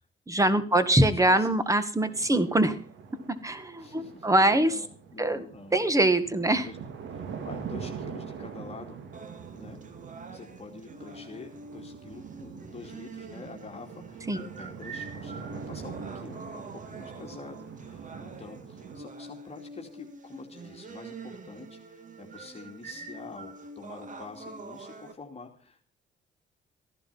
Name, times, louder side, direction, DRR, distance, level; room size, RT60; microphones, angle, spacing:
voice 1, 0.3-2.8 3.4-4.8 5.2-5.5 5.7-6.7 14.3-14.4, right 1 dB, 15° right, 12 dB, 1.9 m, -23 dB
voice 2, 0.9-1.8 3.8-5.8 6.6-6.8 7.1-9.0 9.5-9.8 10.3-25.9, left 4 dB, 30° left, 2 dB, 2.7 m, -46 dB
sound 1, 2.0-19.0, right 6 dB, 70° right, 2.3 m, -43 dB
sound 2, 9.1-25.1, right 3 dB, 40° right, 2.1 m, -45 dB
15.5 x 11.0 x 5.7 m, 0.39 s
cardioid pair, 90°, 20 cm